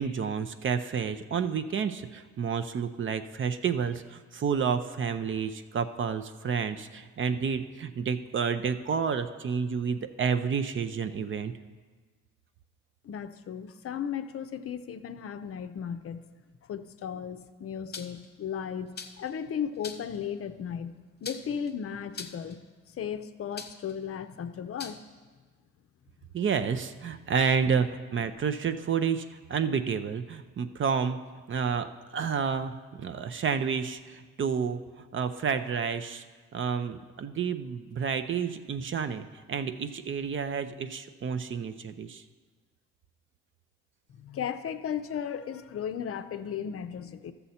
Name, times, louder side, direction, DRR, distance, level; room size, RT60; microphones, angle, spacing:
voice 1, 0.0-11.5 26.3-31.2 31.5-31.9 32.1-36.2 36.5-42.2, right 6 dB, 40° right, 9 dB, 0.5 m, -30 dB
voice 2, 13.0-16.2 16.6-22.7 22.9-25.0 44.1-47.3, left 8 dB, 50° left, 10 dB, 0.6 m, -35 dB
sound 1, 17.9-18.3 19.0-19.3 19.8-20.2 21.2-21.7 22.1-22.5 23.6-23.9 24.8-25.0, left 5 dB, 35° left, 1.0 m, -41 dB
13.0 x 6.9 x 4.2 m, 1.4 s
cardioid pair, 90°, 30 cm